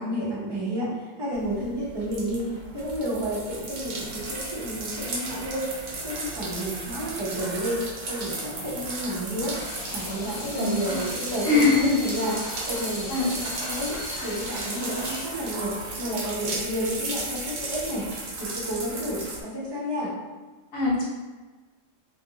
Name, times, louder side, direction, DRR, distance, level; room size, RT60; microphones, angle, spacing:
voice 1, 0.0-2.5 2.7-5.6 5.9-9.5 9.9-18.1 18.4-20.1, equal, 25° right, -6 dB, 0.5 m, -31 dB
sound 1, 1.3-19.4, right 2 dB, 60° right, 0.8 m, -35 dB
Water tap faucet / Sink (filling or washing), 9.3-17.3, left 1 dB, 60° left, 0.6 m, -39 dB
voice 2, 10.5-11.0 11.4-12.0 13.1-13.3 20.7-21.0, left 3 dB, 90° left, -6 dB, 1.4 m, -22 dB
3.0 x 2.5 x 2.7 m, 1.3 s
omnidirectional pair, 1.3 m